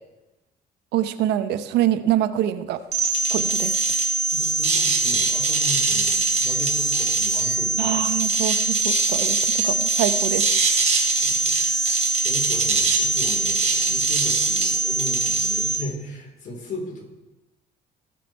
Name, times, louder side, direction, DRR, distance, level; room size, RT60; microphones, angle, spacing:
voice 1, 0.9-2.8 3.3-3.9 7.8-10.6, right 12 dB, 85° right, 12 dB, 0.8 m, -25 dB
sound 1, 2.9-15.8, right 3 dB, 45° right, 2.8 m, -22 dB
voice 2, 4.3-8.0 10.6-10.7 11.0-11.6 12.0-17.1, left 1 dB, 50° left, -1 dB, 4.4 m, -37 dB
19.0 x 7.2 x 4.6 m, 1.0 s
cardioid pair, 110°, 17 cm